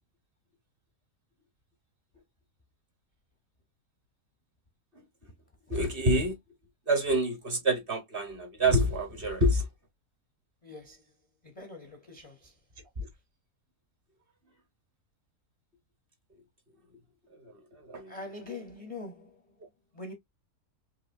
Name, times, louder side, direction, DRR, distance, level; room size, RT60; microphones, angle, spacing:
voice 1, 5.7-6.4 6.9-9.7 13.0-13.1 17.4-18.1, right 1 dB, 40° right, 1.2 m, -27 dB
voice 2, 10.6-11.2 11.4-12.6 18.1-19.6 19.9-20.1, left 2 dB, 35° left, 0.6 m, -44 dB
4.8 x 2.9 x 2.5 m
omnidirectional pair, 1.6 m